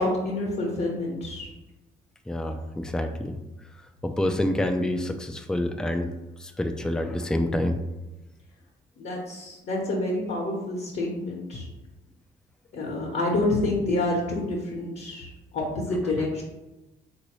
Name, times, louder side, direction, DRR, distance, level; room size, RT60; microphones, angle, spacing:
voice 1, 0.0-1.5 9.0-11.7 12.7-15.3 15.5-16.4, left 2 dB, 55° left, -2 dB, 0.9 m, -28 dB
voice 2, 2.3-3.4 4.0-6.1 6.4-7.8, left 1 dB, 5° left, 6 dB, 0.3 m, -27 dB
3.8 x 2.7 x 3.0 m, 1.0 s
supercardioid pair, 65°, 21 cm